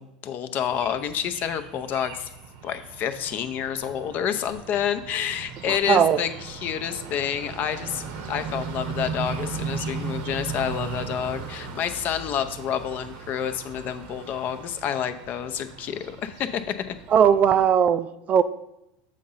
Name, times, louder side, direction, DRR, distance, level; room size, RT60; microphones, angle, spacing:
voice 1, 0.0-2.3 2.6-16.6 16.9-17.0, left 9 dB, 50° left, 9 dB, 0.7 m, -29 dB
sound 1, 0.6-17.7, right 5 dB, 70° right, 1.0 m, -37 dB
voice 2, 5.7-6.2 17.1-18.4, right 8 dB, 40° right, 13 dB, 0.4 m, -19 dB
7.5 x 3.8 x 5.6 m, 0.85 s
supercardioid pair, 100°, 4 cm